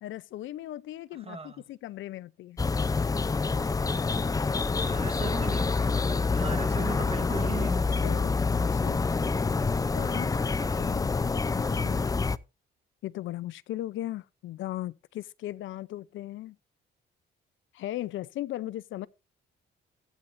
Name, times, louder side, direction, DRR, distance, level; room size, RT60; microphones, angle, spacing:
voice 1, 0.0-2.6 8.0-9.0 9.8-10.3 10.6-12.0 13.0-16.6 17.7-19.1, left 14 dB, 75° left, 0.6 m, -38 dB
voice 2, 1.1-1.6 4.7-8.2 10.5-11.0, right 4 dB, 30° right, 1.9 m, -38 dB
sound 1, 2.6-12.4, left 4 dB, 20° left, 0.5 m, -27 dB
14.0 x 9.2 x 2.6 m
cardioid pair, 90°, 20 cm